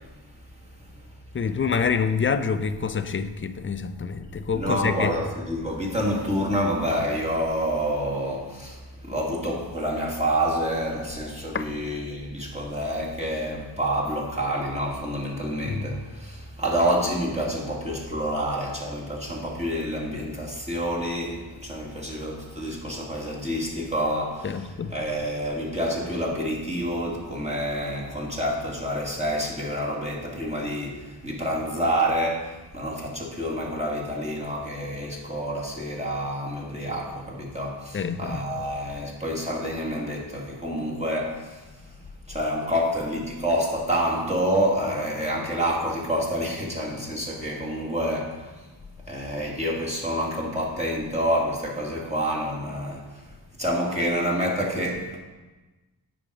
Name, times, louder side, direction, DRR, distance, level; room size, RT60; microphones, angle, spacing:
voice 1, 1.3-5.2 11.5-11.7 15.6-15.9 24.4-25.0 37.9-38.4, left 6 dB, 30° left, 0.5 m, -27 dB
voice 2, 4.5-24.5 24.9-41.7 42.3-48.6 49.1-53.2 53.6-55.2, equal, 15° right, 2.1 m, -28 dB
8.8 x 6.1 x 4.8 m
wide cardioid pair, 85°, 42 cm